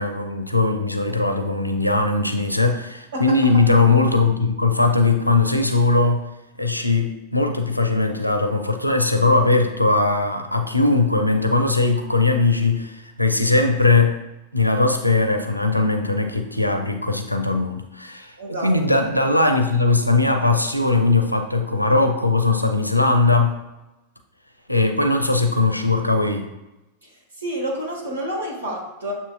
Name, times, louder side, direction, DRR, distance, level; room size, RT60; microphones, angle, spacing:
voice 1, 0.0-6.2 6.6-14.2 14.5-23.5 24.7-26.5, left 3 dB, 90° left, 6 dB, 0.5 m, -19 dB
voice 2, 18.4-18.7 27.4-29.2, equal, 70° right, -1 dB, 1.3 m, -28 dB
7.4 x 2.8 x 2.3 m, 1.0 s
figure-of-eight pair, 90°, 0 cm